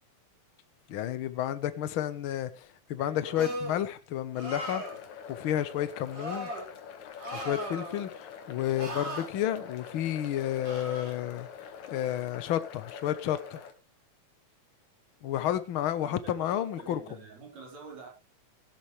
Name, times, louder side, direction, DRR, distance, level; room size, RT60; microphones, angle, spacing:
voice 1, 0.9-4.8 5.3-6.5 7.3-13.6 15.2-17.0, left 11 dB, 60° left, 1.5 m, -31 dB
voice 2, 3.0-3.6 16.0-18.1, right 2 dB, 65° right, 5.3 m, -47 dB
sound 1, 3.4-3.8 4.3-5.0 6.1-6.7 7.2-8.1 8.8-9.3 10.6-11.1, equal, 30° right, 4.8 m, -37 dB
sound 2, 4.5-13.7, left 7 dB, 75° left, 2.9 m, -45 dB
17.5 x 11.0 x 3.3 m
omnidirectional pair, 3.3 m